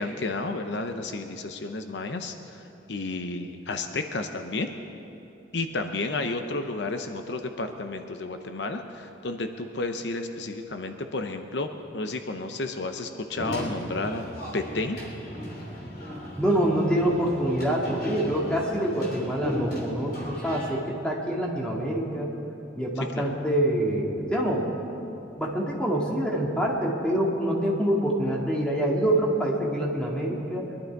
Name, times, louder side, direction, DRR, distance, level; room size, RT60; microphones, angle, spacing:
voice 1, 0.0-2.6 2.9-4.7 5.5-14.2 14.5-15.0 23.1-23.3, left 2 dB, 70° left, 7 dB, 0.7 m, -32 dB
sound 1, 13.4-20.7, left 1 dB, 55° left, 3.2 m, -36 dB
voice 2, 16.4-22.3 22.8-24.7 25.4-30.7, right 1 dB, 5° left, -3 dB, 1.9 m, -26 dB
22.5 x 11.5 x 4.6 m, 3.0 s
head